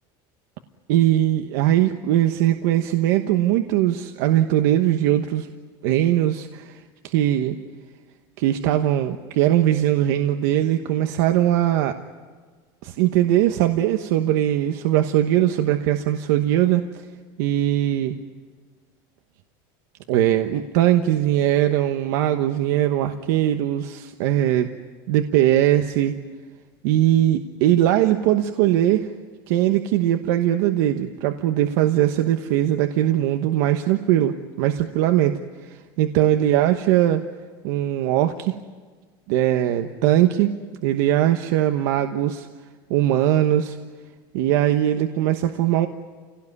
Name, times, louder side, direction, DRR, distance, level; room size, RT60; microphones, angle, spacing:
voice 1, 0.9-5.5 5.8-7.6 8.4-12.0 12.8-17.0 17.4-18.2 20.1-24.7 25.1-26.1 26.8-29.1 29.5-37.2 37.6-38.6 39.3-40.5 40.8-42.5 42.9-43.8 44.3-45.9, right 12 dB, 75° right, 6 dB, 1.1 m, -20 dB
28.0 x 17.5 x 9.8 m, 1.5 s
cardioid pair, 165°, 11 cm